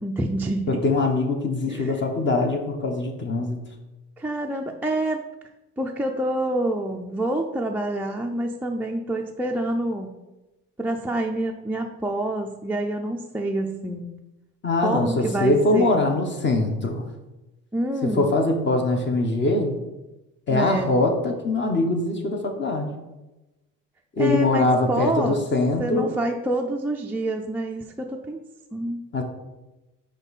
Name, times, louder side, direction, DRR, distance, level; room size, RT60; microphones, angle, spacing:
voice 1, 0.0-0.8 1.7-1.9 4.2-5.2 5.8-10.1 10.8-14.1 14.8-16.0 17.7-18.3 20.5-20.9 24.2-25.4 25.8-28.4 28.7-29.0, right 1 dB, 5° right, 0 dB, 0.4 m, -27 dB
voice 2, 0.7-3.6 14.6-17.0 18.0-19.7 20.5-22.9 24.1-26.1 29.1-29.2, left 2 dB, 35° left, 4 dB, 1.0 m, -22 dB
5.3 x 4.5 x 4.1 m, 1.0 s
cardioid pair, 95°, 33 cm